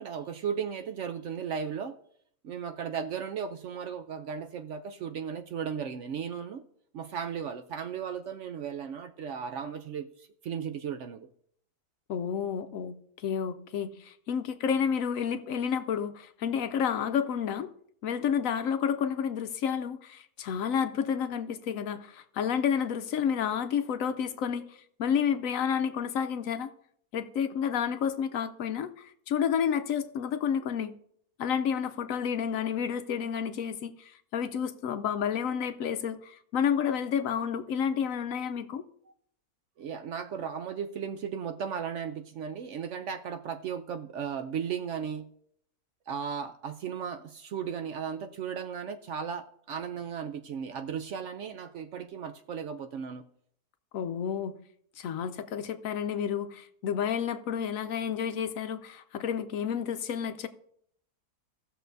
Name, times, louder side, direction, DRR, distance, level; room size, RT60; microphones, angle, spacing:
voice 1, 0.0-1.9 2.4-6.6 6.9-11.3 39.8-45.3 46.1-53.2, right 7 dB, 65° right, 0.8 m, -36 dB
voice 2, 12.1-17.7 18.0-26.7 27.1-30.9 31.4-38.8 53.9-54.6 55.0-60.5, left 7 dB, 70° left, 0.9 m, -30 dB
17.0 x 6.7 x 2.6 m
omnidirectional pair, 1.6 m